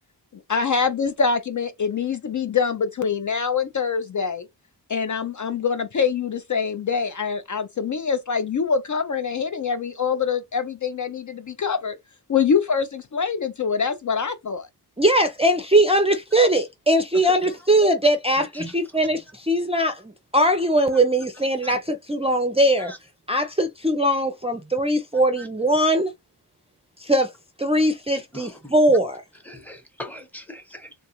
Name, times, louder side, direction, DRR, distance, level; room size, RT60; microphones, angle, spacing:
voice 1, 0.5-4.5 4.9-12.0 12.3-14.7, left 6 dB, 50° left, 0.5 m, -24 dB
voice 2, 15.0-20.0 20.3-22.9 23.3-26.1 27.0-27.3 27.6-29.2, right 1 dB, 15° right, 0.5 m, -20 dB
voice 3, 28.3-28.7 29.4-30.9, left 1 dB, 5° left, 0.9 m, -40 dB
3.2 x 2.4 x 2.8 m
wide cardioid pair, 95°, 40 cm